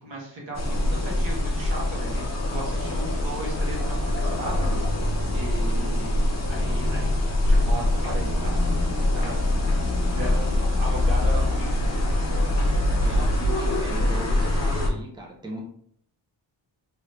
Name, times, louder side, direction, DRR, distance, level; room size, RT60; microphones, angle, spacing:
voice 1, 0.0-4.8 5.3-6.2 6.5-7.1 7.4-8.8 9.1-9.6 10.0-11.9, right 2 dB, 85° right, -3 dB, 1.4 m, -36 dB
sound 1, 0.5-14.9, left 1 dB, 35° left, 0.8 m, -24 dB
voice 2, 13.0-15.6, right 1 dB, 10° right, -1 dB, 0.6 m, -37 dB
3.4 x 3.1 x 2.6 m, 0.65 s
wide cardioid pair, 135°, 45 cm